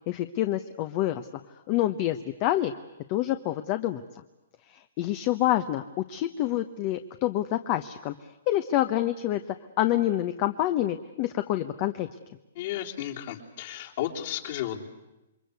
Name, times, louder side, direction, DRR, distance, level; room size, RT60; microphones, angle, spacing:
voice 1, 0.1-1.3 1.7-2.7 3.1-4.0 4.7-5.8 6.1-8.1 8.5-9.4 9.8-12.1, left 13 dB, 35° left, 10 dB, 0.9 m, -27 dB
voice 2, 12.5-14.9, left 11 dB, 50° left, 1 dB, 3.3 m, -33 dB
28.0 x 22.5 x 8.2 m, 0.98 s
hypercardioid pair, 150°, 0 cm